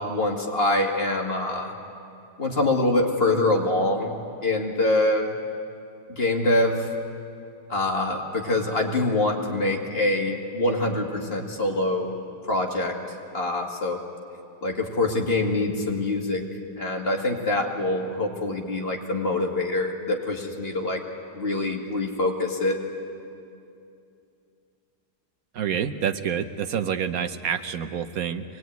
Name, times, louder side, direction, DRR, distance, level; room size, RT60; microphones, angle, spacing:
voice 1, 0.1-1.7 2.4-4.1 4.4-5.3 6.1-6.8 7.7-12.1 12.5-14.0 14.6-16.4 16.8-21.0 21.3-22.8, left 2 dB, 35° left, 1 dB, 2.3 m, -25 dB
voice 2, 25.5-28.4, right 8 dB, 65° right, 9 dB, 1.3 m, -27 dB
23.5 x 19.5 x 9.3 m, 2.6 s
omnidirectional pair, 1.7 m